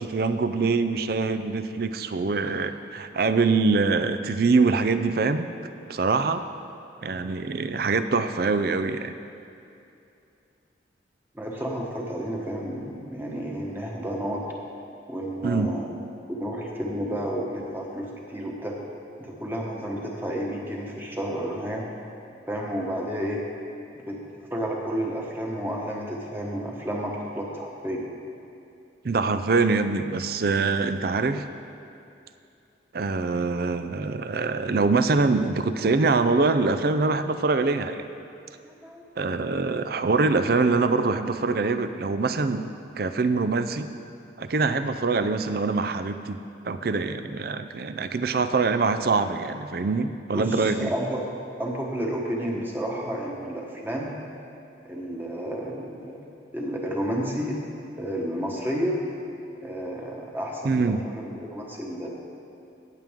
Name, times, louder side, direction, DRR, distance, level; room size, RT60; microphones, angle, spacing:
voice 1, 0.0-5.5 5.9-6.4 7.0-9.1 15.4-15.7 29.0-31.4 32.9-38.0 39.2-42.7 43.0-43.9 44.4-46.4 46.6-50.9 60.6-61.0, right 4 dB, 55° right, 10 dB, 0.5 m, -24 dB
voice 2, 11.3-14.4 15.1-15.9 16.3-18.8 19.2-21.8 22.5-23.4 24.1-24.2 24.5-28.0 38.8-39.0 50.3-51.2 51.6-54.2 54.8-56.2 56.5-57.6 58.0-59.0 59.6-62.1, equal, 10° right, -2 dB, 1.3 m, -31 dB
18.0 x 7.6 x 3.7 m, 2.7 s
head